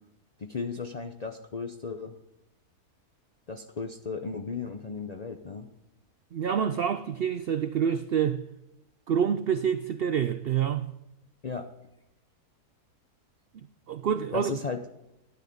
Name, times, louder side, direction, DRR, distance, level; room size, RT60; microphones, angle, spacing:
voice 1, 0.4-2.2 3.5-5.7 11.4-11.7 14.3-14.8, left 4 dB, 45° left, 0.5 m, -35 dB
voice 2, 6.3-8.4 9.1-10.9 13.9-14.6, right 8 dB, 70° right, 0.5 m, -27 dB
12.0 x 10.0 x 5.2 m
omnidirectional pair, 1.6 m